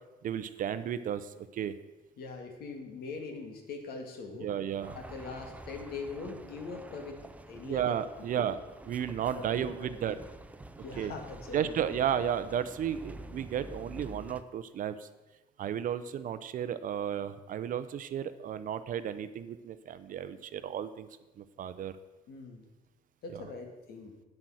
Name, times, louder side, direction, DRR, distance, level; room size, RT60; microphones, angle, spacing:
voice 1, 0.2-1.7 4.4-5.0 7.6-8.6 8.9-10.2 11.0-11.1 11.5-15.1 15.6-21.1 21.4-21.9 23.3-23.4, right 9 dB, 50° right, 13 dB, 0.6 m, -33 dB
voice 2, 2.2-4.5 4.9-7.2 7.5-7.9 8.4-8.5 9.3-10.1 10.8-12.0 22.3-22.6 23.2-24.1, left 4 dB, 65° left, 4 dB, 2.0 m, -42 dB
sound 1, 4.8-14.4, right 1 dB, 10° right, 0.6 m, -48 dB
8.8 x 7.7 x 6.2 m, 1.2 s
cardioid pair, 110°, 17 cm